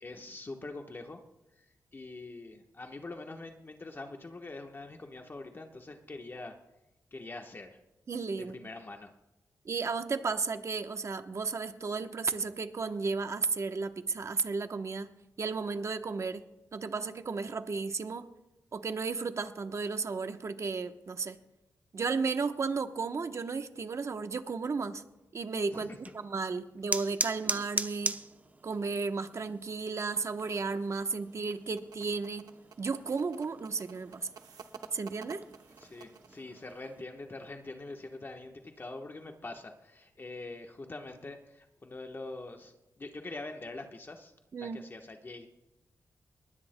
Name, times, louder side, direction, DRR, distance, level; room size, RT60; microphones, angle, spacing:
voice 1, 0.0-1.2 1.6-1.7 1.9-6.6 7.1-7.8 8.4-9.1 25.7-26.0 35.8-44.3 44.6-45.5, left 2 dB, 35° left, 4 dB, 1.1 m, -44 dB
voice 2, 8.1-8.7 9.6-15.1 15.4-16.4 16.7-18.3 18.7-21.4 21.9-25.0 25.3-28.2 28.6-32.5 32.8-34.3 34.9-35.4 44.5-44.8, right 4 dB, 50° right, 8 dB, 0.9 m, -34 dB
sound 1, 25.9-37.0, right 2 dB, 25° right, 0.7 m, -41 dB
sound 2, 31.3-36.4, right 6 dB, 85° right, 0.9 m, -51 dB
20.5 x 19.5 x 2.2 m, 0.97 s
cardioid pair, 80°, 6 cm